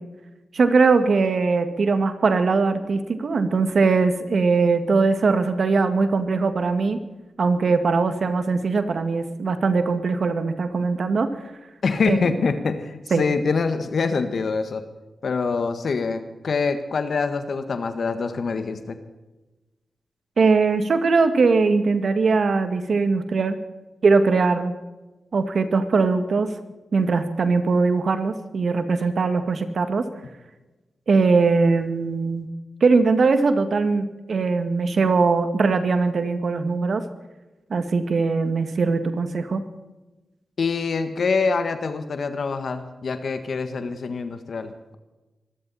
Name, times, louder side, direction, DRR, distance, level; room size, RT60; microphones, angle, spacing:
voice 1, 0.5-7.0 7.4-11.3 12.1-12.4 13.1-13.2 20.4-23.6 24.0-24.7 25.3-26.5 26.9-30.1 31.1-32.5 32.8-37.0 37.7-39.6, right 4 dB, 65° right, 9 dB, 1.9 m, -21 dB
voice 2, 11.8-14.8 15.2-19.0 40.6-45.0, left 4 dB, 70° left, 9 dB, 1.5 m, -25 dB
25.0 x 13.0 x 4.2 m, 1.1 s
supercardioid pair, 45°, 0 cm